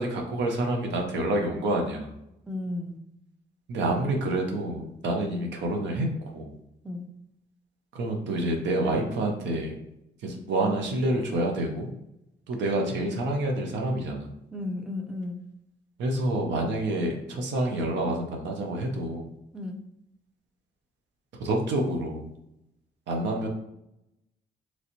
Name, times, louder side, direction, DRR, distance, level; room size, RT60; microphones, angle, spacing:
voice 1, 0.0-2.1 3.7-6.1 6.3-6.5 7.9-9.7 10.2-11.9 12.5-14.3 16.0-19.3 21.4-22.3 23.1-23.5, right 1 dB, 85° right, 2 dB, 0.6 m, -28 dB
voice 2, 2.5-3.0 6.8-7.1 14.5-15.4 19.5-19.8, left 2 dB, 5° right, 3 dB, 0.5 m, -34 dB
3.1 x 2.6 x 2.8 m, 0.83 s
cardioid pair, 65°, 18 cm